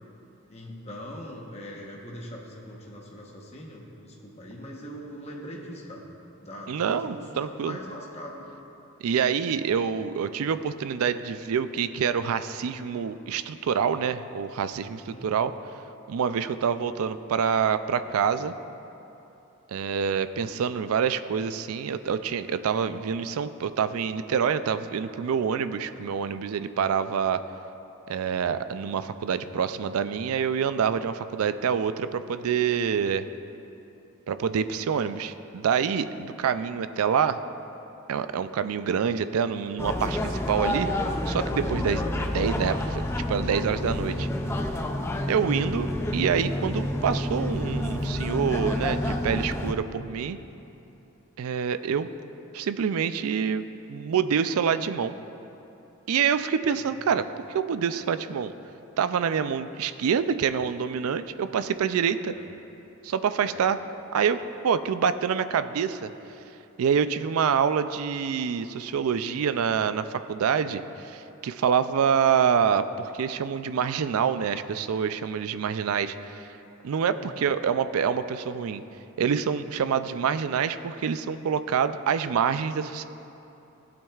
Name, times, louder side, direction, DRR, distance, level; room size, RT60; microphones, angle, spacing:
voice 1, 0.5-6.0 6.4-8.5 15.1-15.4 62.2-62.5 63.4-63.6 77.1-77.4, equal, 30° left, -2 dB, 1.0 m, -41 dB
voice 2, 6.7-7.8 9.0-15.5 16.1-18.5 19.7-27.4 28.1-33.3 34.3-37.4 38.1-40.9 41.3-44.3 45.3-50.4 51.4-52.1 52.5-55.1 56.1-58.5 59.0-62.3 63.0-63.8 64.1-66.1 66.8-76.4 76.8-78.8 79.2-83.1, right 7 dB, 75° right, 12 dB, 0.4 m, -26 dB
sound 1, 39.8-49.7, left 1 dB, 10° left, 0.4 m, -29 dB
15.5 x 8.7 x 2.4 m, 2.9 s
head